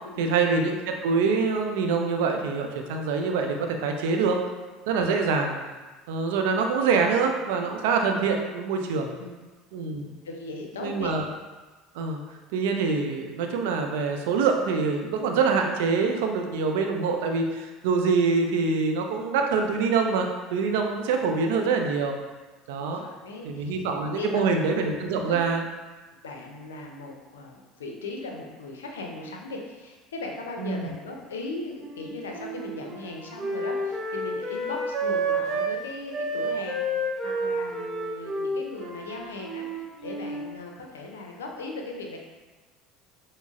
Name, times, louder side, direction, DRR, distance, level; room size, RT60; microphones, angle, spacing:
voice 1, 0.2-4.4 4.9-5.6 6.1-9.1 9.7-10.1 10.8-11.2 11.9-12.2 12.5-22.2 22.7-23.0 23.4-25.6 30.6-30.9, right 4 dB, 70° right, 3 dB, 0.4 m, -25 dB
voice 2, 10.2-11.2 22.8-23.8 24.2-24.7 25.3-25.4 26.2-42.2, left 2 dB, 80° left, 1 dB, 0.5 m, -38 dB
Wind instrument woodwind instrument, 31.8-35.7 36.1-40.5, right 1 dB, 30° right, 0.8 m, -30 dB
6.0 x 2.0 x 2.4 m, 1.3 s
hypercardioid pair, 70°, 0 cm